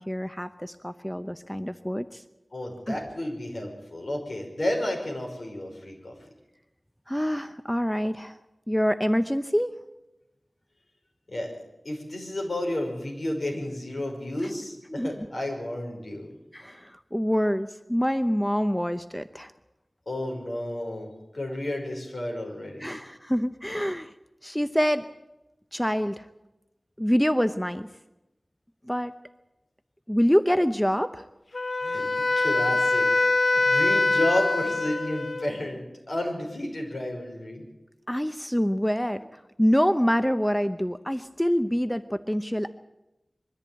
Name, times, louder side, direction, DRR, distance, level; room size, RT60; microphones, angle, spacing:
voice 1, 0.0-2.2 2.9-3.0 7.1-8.4 8.7-9.8 14.9-15.1 16.5-19.5 22.8-24.1 24.4-25.1 25.7-26.3 27.0-27.9 28.8-29.1 30.1-31.2 38.1-42.7, equal, 5° left, 10 dB, 0.7 m, -26 dB
voice 2, 2.5-6.1 11.3-11.5 11.8-16.4 20.1-22.9 31.8-32.1 32.4-37.6, left 1 dB, 70° left, 1 dB, 5.5 m, -32 dB
Wind instrument woodwind instrument, 31.5-35.6, left 3 dB, 50° left, 0.8 m, -24 dB
22.5 x 14.0 x 8.8 m, 0.98 s
wide cardioid pair, 60°, 0 cm